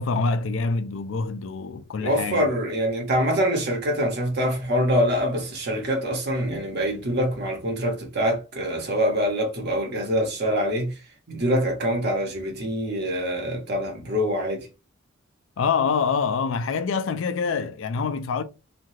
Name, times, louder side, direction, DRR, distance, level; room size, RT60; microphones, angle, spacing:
voice 1, 0.0-2.5 15.6-18.4, left 5 dB, 70° left, 0.4 m, -25 dB
voice 2, 2.0-11.0 11.3-14.7, equal, 55° right, 1.0 m, -25 dB
3.2 x 2.3 x 2.7 m
head